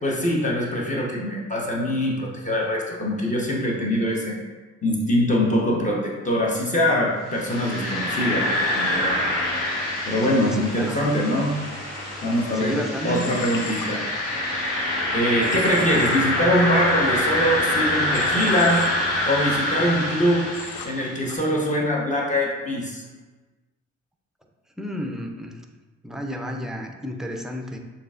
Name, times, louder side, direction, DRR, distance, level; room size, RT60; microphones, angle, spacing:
voice 1, 0.0-4.4 4.8-8.5 8.7-9.3 10.0-11.5 12.2-14.0 15.1-18.8 19.2-20.5 20.8-23.0, equal, 25° left, -3 dB, 0.8 m, -23 dB
sound 1, 7.3-21.3, left 1 dB, 55° left, 1.4 m, -25 dB
voice 2, 10.3-11.0 12.6-13.3 24.8-25.6 26.0-27.8, equal, ahead, 3 dB, 0.4 m, -31 dB
Human voice / Train, 13.1-13.9 15.4-16.2 18.1-18.9 20.5-20.9 21.3-21.4, left 5 dB, 80° left, 0.5 m, -37 dB
6.5 x 2.5 x 2.4 m, 1.3 s
cardioid pair, 90°, 30 cm